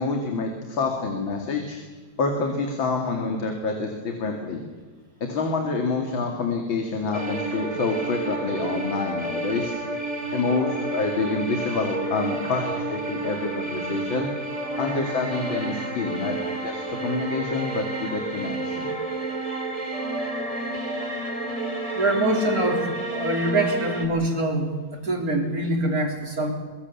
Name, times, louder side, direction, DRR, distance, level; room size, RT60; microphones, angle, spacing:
voice 1, 0.0-1.8 2.2-4.6 5.2-9.8 10.3-14.3 14.8-16.4 16.6-19.0, left 4 dB, 70° left, 3 dB, 3.1 m, -27 dB
sound 1, 7.1-24.1, right 2 dB, 15° right, 3.2 m, -30 dB
voice 2, 21.9-26.5, right 2 dB, 45° right, 2 dB, 4.0 m, -24 dB
23.5 x 23.0 x 7.2 m, 1.3 s
omnidirectional pair, 2.2 m